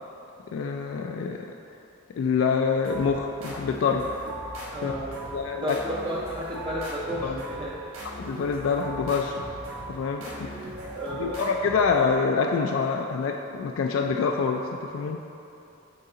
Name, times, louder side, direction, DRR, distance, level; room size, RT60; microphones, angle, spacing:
voice 1, 0.5-1.5 2.2-4.1 4.8-4.9 5.3-5.7 7.2-7.4 8.3-9.3 9.9-10.2 11.2-15.2, left 5 dB, 70° left, 2 dB, 0.3 m, -26 dB
sound 1, 2.8-12.4, right 1 dB, 85° right, 1.2 m, -39 dB
voice 2, 4.7-5.2 5.6-7.8 10.3-10.6 10.9-11.4, right 1 dB, 25° right, -6 dB, 0.5 m, -33 dB
6.6 x 4.0 x 3.8 m, 2.9 s
head